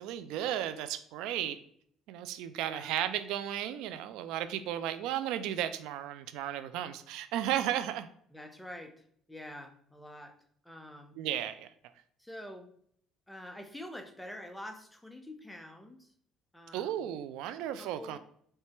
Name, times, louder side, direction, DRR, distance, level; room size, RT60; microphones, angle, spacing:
voice 1, 0.0-1.6 2.1-8.1 11.2-11.7 16.7-18.2, right 11 dB, 85° right, 12 dB, 0.3 m, -34 dB
voice 2, 2.6-2.9 8.3-10.3 10.6-11.2 12.2-12.7 13.3-16.1 16.5-17.0 17.8-18.2, left 1 dB, 5° left, 5 dB, 0.6 m, -46 dB
4.6 x 3.2 x 2.9 m, 0.64 s
cardioid pair, 125°, 0 cm